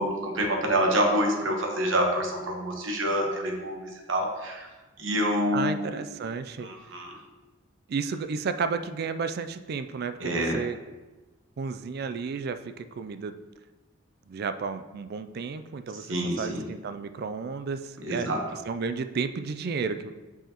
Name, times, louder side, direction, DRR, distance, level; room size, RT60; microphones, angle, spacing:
voice 1, 0.0-4.7 5.0-5.9 6.6-7.1 10.2-10.6 16.1-16.6 18.0-18.4, equal, 75° right, 1 dB, 1.1 m, -27 dB
voice 2, 5.5-6.7 7.9-10.8 11.6-13.4 14.3-18.3 18.6-20.1, right 5 dB, 55° right, 10 dB, 0.3 m, -32 dB
7.8 x 4.8 x 2.9 m, 1.2 s
head